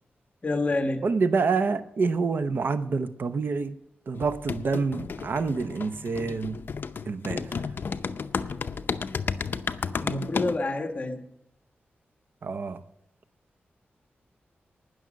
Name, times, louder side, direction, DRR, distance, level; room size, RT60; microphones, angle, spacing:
voice 1, 0.4-1.1 10.0-11.2, left 2 dB, 35° left, 1.4 m, -28 dB
voice 2, 1.0-3.7 4.1-6.6 7.1-7.5 12.4-12.8, right 4 dB, 60° right, 0.7 m, -27 dB
sound 1, 4.1-10.6, left 5 dB, 60° left, 0.6 m, -32 dB
19.0 x 6.4 x 6.4 m
wide cardioid pair, 130°, 4 cm